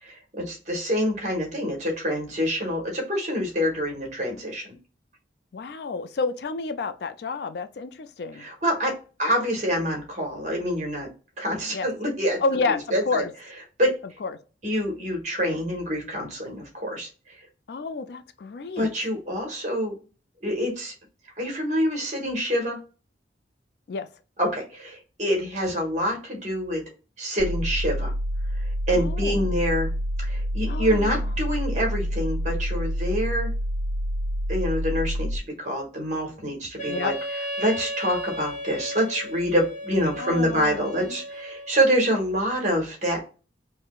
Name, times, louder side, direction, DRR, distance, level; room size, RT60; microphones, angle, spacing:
voice 1, 0.0-4.7 8.3-8.9 9.2-11.1 11.4-12.4 12.7-13.2 13.8-13.9 14.6-17.1 18.8-19.9 20.4-20.9 21.4-22.8 24.4-26.8 27.2-28.1 28.6-29.9 30.2-33.5 34.5-37.1 37.6-43.2, equal, 40° right, 1.4 m, -26 dB
voice 2, 5.5-8.5 11.7-11.9 12.4-13.3 14.2-14.4 17.7-18.9 23.9-24.1 28.9-29.4 30.7-31.1 36.9-37.1 40.2-41.2, left 4 dB, 60° left, 0.4 m, -30 dB
sound 1, 27.4-35.4, equal, 80° right, 0.3 m, -27 dB
Wind instrument woodwind instrument, 36.8-41.8, equal, 40° left, 0.8 m, -34 dB
4.5 x 2.1 x 2.3 m
head